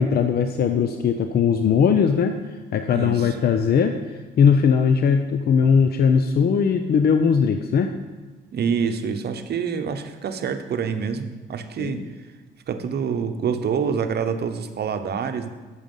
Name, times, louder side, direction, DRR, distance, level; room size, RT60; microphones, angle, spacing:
voice 1, 0.0-2.3 2.7-7.9 11.8-12.0, left 6 dB, 55° left, 7 dB, 0.6 m, -19 dB
voice 2, 2.9-3.4 8.5-12.0 12.7-15.5, right 6 dB, 55° right, 8 dB, 0.8 m, -26 dB
8.9 x 6.6 x 5.4 m, 1.3 s
cardioid pair, 90°, 20 cm